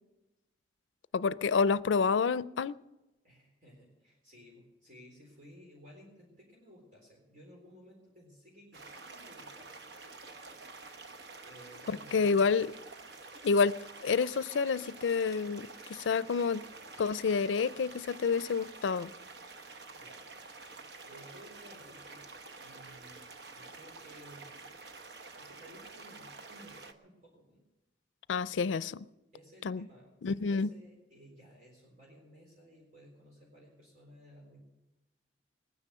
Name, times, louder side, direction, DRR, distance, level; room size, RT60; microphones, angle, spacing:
voice 1, 1.1-2.7 12.1-12.7 13.4-13.8 14.0-16.6 17.0-19.1 28.3-29.1 29.6-29.9 30.2-30.7, left 5 dB, 90° left, 0.4 m, -28 dB
voice 2, 3.2-9.7 11.5-12.7 20.0-20.3 20.7-24.5 25.4-27.6 29.3-34.6, equal, 45° right, 3.9 m, -56 dB
sound 1, 8.7-26.9, right 3 dB, 65° right, 1.0 m, -49 dB
20.5 x 9.8 x 6.7 m
head